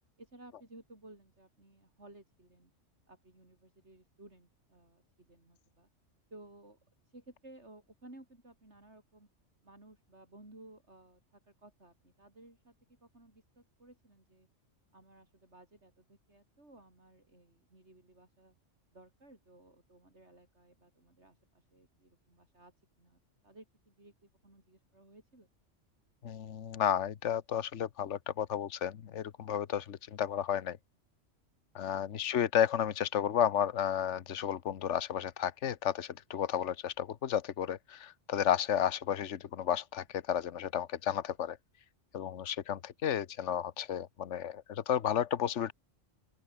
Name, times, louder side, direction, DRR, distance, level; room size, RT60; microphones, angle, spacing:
voice 1, 0.2-2.7 3.1-5.9 6.3-6.8 7.1-9.3 9.6-14.5 14.9-18.5 18.9-22.7 23.0-25.5 32.1-32.3, right 2 dB, 65° right, 6.7 m, -57 dB
voice 2, 26.2-30.8 31.7-41.6 42.1-45.7, left 9 dB, 70° left, 1.3 m, -32 dB
open air
omnidirectional pair, 1.3 m